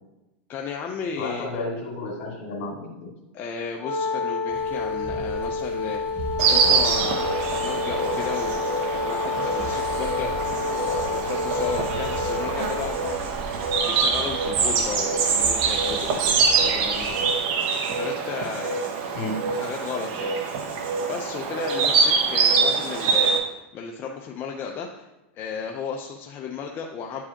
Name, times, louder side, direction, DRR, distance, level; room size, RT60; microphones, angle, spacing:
voice 1, 0.5-1.5 3.3-8.8 9.0-17.2 18.0-18.8 19.5-20.3 21.1-25.1 25.3-27.2, left 6 dB, 35° left, 1 dB, 0.6 m, -34 dB
voice 2, 1.2-3.1 19.1-19.5, left 2 dB, 60° left, 0 dB, 2.3 m, -32 dB
Wind instrument woodwind instrument, 3.8-13.0, left 4 dB, 15° left, 1.8 m, -29 dB
sound 1, 4.5-17.3, right 2 dB, 25° right, 0.9 m, -39 dB
Insect, 6.4-23.4, right 5 dB, 55° right, 1.0 m, -24 dB
9.8 x 4.7 x 2.9 m, 0.98 s
supercardioid pair, 125°, 7 cm